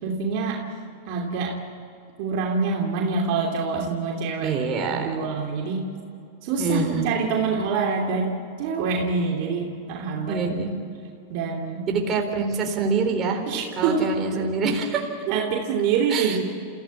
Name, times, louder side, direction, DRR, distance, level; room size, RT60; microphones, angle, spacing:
voice 1, 0.0-0.7 1.1-1.6 2.2-4.5 4.9-5.9 6.4-8.3 8.6-10.4 11.3-11.9 13.5-14.4 15.3-16.4, right 5 dB, 55° right, 0 dB, 2.9 m, -26 dB
voice 2, 4.4-5.2 6.6-7.1 10.3-10.7 11.9-13.4 13.8-15.1 16.1-16.4, right 4 dB, 30° right, 3 dB, 4.2 m, -25 dB
27.5 x 16.0 x 8.6 m, 2.7 s
supercardioid pair, 130°, 0 cm